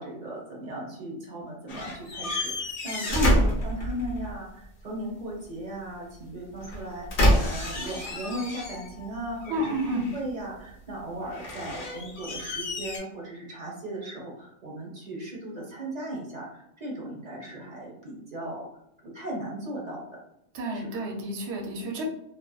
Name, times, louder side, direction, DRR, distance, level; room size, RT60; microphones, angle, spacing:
voice 1, 0.0-18.6 19.0-20.0 20.7-21.1, right 1 dB, 45° right, -3 dB, 0.7 m, -37 dB
sound 1, 1.7-4.3 6.6-9.1 9.4-10.3 11.3-13.0, equal, 55° left, 0.7 m, -28 dB
voice 2, 9.5-10.0 20.5-22.0, right 1 dB, 75° right, -1 dB, 0.9 m, -29 dB
2.7 x 2.1 x 2.2 m, 0.77 s
omnidirectional pair, 1.2 m